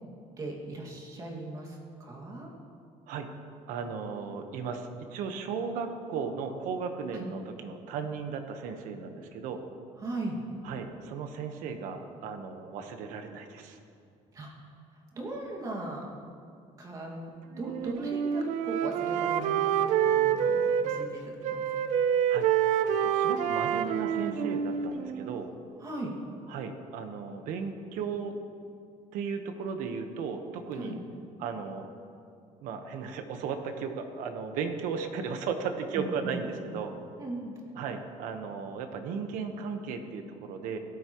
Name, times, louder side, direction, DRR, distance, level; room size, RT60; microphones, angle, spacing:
voice 1, 0.4-2.5 7.1-7.2 10.0-10.4 14.3-14.5 15.1-16.0 16.8-21.6 25.8-26.1 30.8-31.0 35.9-36.3 37.2-37.5, right 2 dB, 25° right, -2 dB, 2.1 m, -38 dB
voice 2, 3.7-9.6 10.6-13.8 22.3-22.5 22.9-25.5 26.5-28.3 29.1-30.9 31.4-31.9 32.6-36.9 37.8-40.8, right 5 dB, 90° right, 6 dB, 1.2 m, -35 dB
Wind instrument woodwind instrument, 17.6-21.1 21.4-25.4, right 9 dB, 65° right, 0.6 m, -27 dB
17.5 x 13.0 x 3.1 m, 2.4 s
cardioid pair, 165°, 13 cm